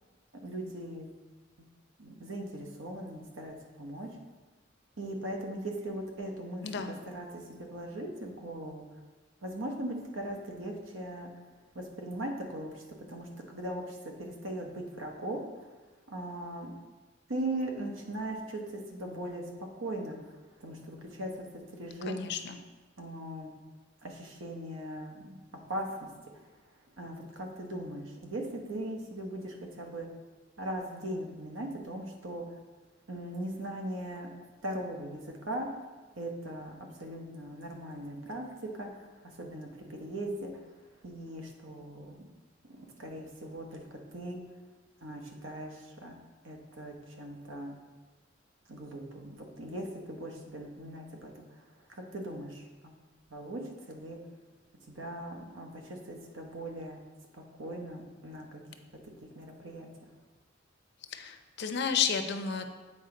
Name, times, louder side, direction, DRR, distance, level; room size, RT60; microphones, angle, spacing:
voice 1, 0.3-1.1 2.0-4.1 5.0-9.0 9.4-11.3 11.7-12.8 13.1-15.7 16.1-16.7 17.3-19.5 19.8-22.2 23.0-23.5 24.0-26.1 26.3-26.5 27.0-30.1 30.6-32.5 33.1-34.3 34.6-35.7 36.1-40.7 41.0-42.3 42.6-44.4 45.0-46.2 46.4-47.8 48.7-51.8 52.1-53.0 53.3-54.2 54.8-57.0 57.3-58.8 59.2-60.1, right 1 dB, 80° right, 2 dB, 1.1 m, -39 dB
voice 2, 6.6-6.9 22.1-22.6 61.1-62.7, left 6 dB, 60° left, 7 dB, 0.6 m, -32 dB
7.8 x 4.8 x 3.8 m, 1.3 s
head